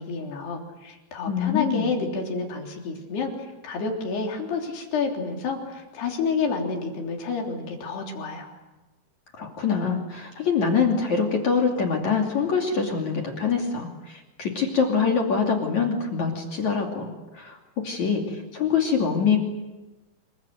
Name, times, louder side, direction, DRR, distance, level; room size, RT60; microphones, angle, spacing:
voice 1, 0.0-8.5, left 4 dB, 60° left, 1 dB, 5.4 m, -29 dB
voice 2, 1.3-1.9 9.3-19.4, left 5 dB, 45° left, 1 dB, 3.5 m, -24 dB
28.0 x 23.5 x 8.0 m, 1.1 s
omnidirectional pair, 5.4 m